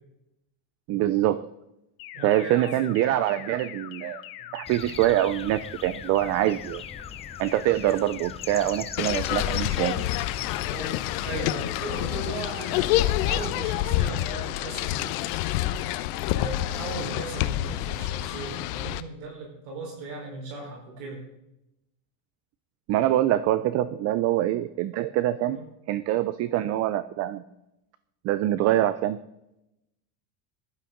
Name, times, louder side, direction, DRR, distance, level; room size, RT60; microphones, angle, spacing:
voice 1, 0.9-1.4 2.2-4.2 4.5-6.8 7.4-10.0 22.9-25.6 25.9-27.4 28.2-29.2, right 13 dB, 35° right, 14 dB, 0.4 m, -24 dB
sound 1, 2.0-12.0 12.4-12.8 13.2-13.6 14.0-14.4 14.8-15.2 15.6-16.0, left 13 dB, 50° left, 1.1 m, -42 dB
voice 2, 2.1-2.9 10.7-15.2 16.3-21.2 23.7-23.9 25.4-25.6, right 3 dB, 75° right, -1 dB, 4.3 m, -38 dB
sound 2, 4.7-13.7, left 6 dB, 15° left, 0.6 m, -43 dB
sound 3, 9.0-19.0, left 14 dB, 80° left, 0.8 m, -28 dB
15.0 x 11.5 x 3.8 m, 0.87 s
cardioid pair, 150°, 46 cm